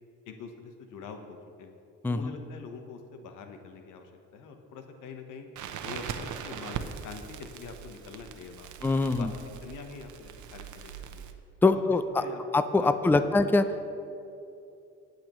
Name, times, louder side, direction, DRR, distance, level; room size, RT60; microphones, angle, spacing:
voice 1, 0.3-1.7 2.1-5.5 5.8-8.7 9.0-9.3 9.6-11.3 11.7-11.8 12.2-12.4 12.8-13.3 13.6-13.7, left 5 dB, 90° left, 5 dB, 1.0 m, -44 dB
Crackle, 5.6-11.3, right 8 dB, 75° right, 0.8 m, -40 dB
voice 2, 8.8-9.3 11.6-12.2 12.5-13.6, left 3 dB, 5° left, 11 dB, 0.4 m, -23 dB
19.5 x 7.8 x 3.0 m, 2.7 s
cardioid pair, 90°, 30 cm